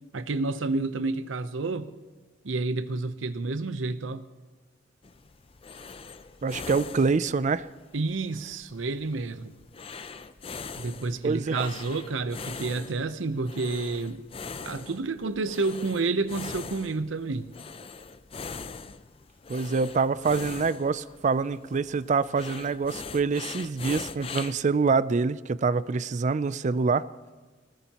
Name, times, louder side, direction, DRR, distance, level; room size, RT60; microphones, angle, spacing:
voice 1, 0.1-1.9 2.4-4.2 7.9-9.5 10.8-14.2 14.6-17.5, right 3 dB, 80° right, 0.8 m, -30 dB
sound 1, 5.0-24.6, left 5 dB, 30° left, 0.5 m, -42 dB
voice 2, 6.4-7.7 11.2-11.7 19.5-27.1, right 4 dB, 40° right, 0.4 m, -26 dB
19.5 x 19.0 x 2.9 m
head